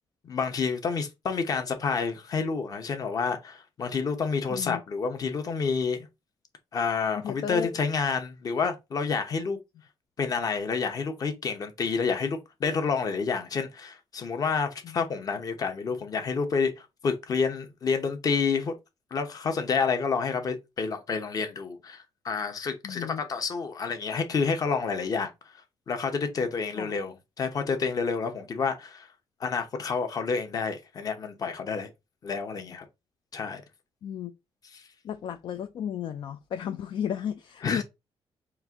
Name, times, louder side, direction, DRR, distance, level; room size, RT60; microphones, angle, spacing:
voice 1, 0.2-6.0 6.7-9.6 10.2-18.7 19.1-25.3 25.9-29.1 29.4-31.9 32.2-32.8 33.3-33.6 34.7-34.8 37.6-37.8, left 5 dB, 40° left, 0.9 m, -29 dB
voice 2, 4.5-4.8 7.1-7.8 14.8-15.0 22.8-23.2 26.8-26.9 34.0-34.3 35.0-37.8, left 9 dB, 55° left, 0.4 m, -33 dB
4.4 x 2.5 x 3.5 m
cardioid pair, 155°, 10 cm